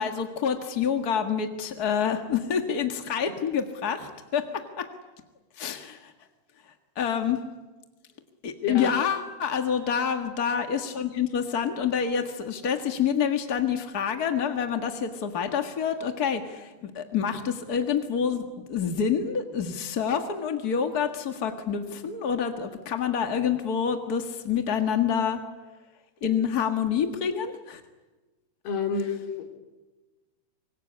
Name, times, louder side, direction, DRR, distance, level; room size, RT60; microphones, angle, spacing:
voice 1, 0.0-4.9 5.6-6.1 6.9-7.4 8.4-25.4 26.2-27.8, left 7 dB, 50° left, 6 dB, 1.1 m, -27 dB
voice 2, 8.6-8.9 28.6-29.6, left 6 dB, 85° left, 5 dB, 5.0 m, -29 dB
25.5 x 23.5 x 9.9 m, 1.2 s
omnidirectional pair, 4.4 m